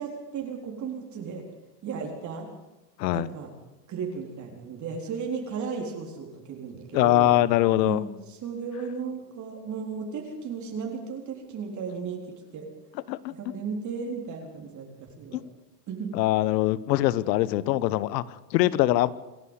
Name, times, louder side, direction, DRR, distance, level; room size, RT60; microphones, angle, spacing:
voice 1, 0.0-1.5 1.8-2.5 3.1-3.5 3.9-7.3 7.8-12.2 12.5-12.7 13.3-15.4 15.9-16.1, right 5 dB, 35° right, 1 dB, 4.0 m, -35 dB
voice 2, 6.9-8.0 13.1-13.3 15.3-15.4 16.1-19.1, left 15 dB, 80° left, 19 dB, 1.2 m, -23 dB
27.5 x 11.5 x 8.2 m, 1.0 s
supercardioid pair, 130°, 50 cm